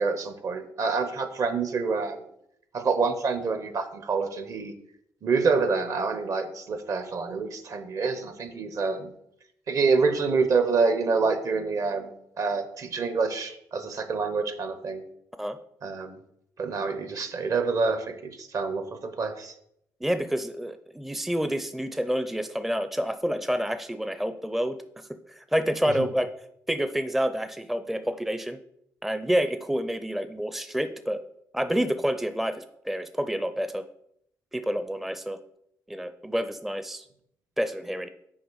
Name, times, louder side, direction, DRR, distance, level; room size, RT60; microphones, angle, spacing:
voice 1, 0.0-2.2 2.7-4.7 5.2-9.1 9.7-15.0 15.8-16.2 16.6-19.5 25.9-26.0, right 4 dB, 55° right, 10 dB, 1.1 m, -27 dB
voice 2, 20.0-24.8 25.3-26.3 26.7-28.6 29.0-31.2 31.5-33.8 34.5-35.4 35.9-37.1 37.6-38.1, equal, 5° right, 10 dB, 0.5 m, -28 dB
6.3 x 4.7 x 6.3 m, 0.74 s
cardioid pair, 80°, 7 cm